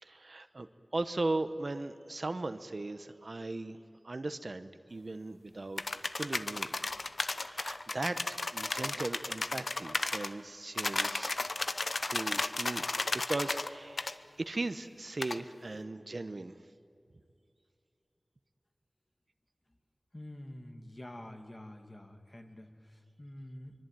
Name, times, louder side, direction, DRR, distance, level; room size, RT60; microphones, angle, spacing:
voice 1, 0.0-3.8 4.0-6.8 7.4-14.1 14.4-16.5, right 2 dB, 55° right, 10 dB, 1.0 m, -38 dB
sound 1, 5.8-10.3 10.8-13.7 14.0-14.1 15.2-15.4, left 2 dB, 60° left, 0.9 m, -34 dB
voice 2, 20.1-23.7, left 1 dB, 30° left, 4 dB, 2.5 m, -47 dB
24.5 x 23.5 x 9.2 m, 2.5 s
wide cardioid pair, 65°, 0 cm